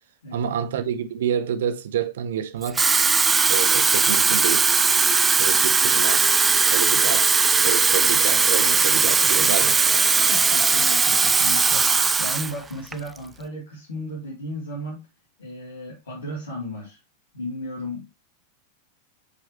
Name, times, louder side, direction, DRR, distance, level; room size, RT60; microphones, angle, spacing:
voice 1, 0.3-2.9 3.5-4.7 5.4-6.3 6.6-9.7, right 9 dB, 60° right, 1.0 m, -28 dB
Water tap faucet / Fill (with liquid), 2.6-12.5 12.9-13.2, right 4 dB, 15° right, 0.4 m, -19 dB
voice 2, 9.2-9.5 10.2-15.1 15.4-17.0 17.3-18.1, left 1 dB, 70° left, 3.0 m, -35 dB
8.3 x 4.8 x 3.2 m
figure-of-eight pair, 90°, 0 cm